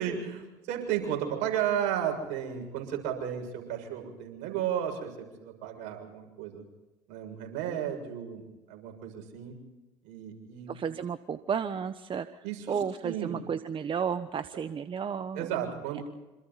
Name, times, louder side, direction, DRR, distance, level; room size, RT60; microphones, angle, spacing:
voice 1, 0.0-6.6 7.1-9.5 10.0-10.7 12.4-12.8 13.0-13.4 15.3-16.0, right 9 dB, 70° right, 3 dB, 6.9 m, -33 dB
voice 2, 10.7-15.6 15.9-16.0, right 7 dB, 40° right, 11 dB, 1.2 m, -33 dB
27.5 x 26.5 x 4.2 m, 1.1 s
hypercardioid pair, 70°, 14 cm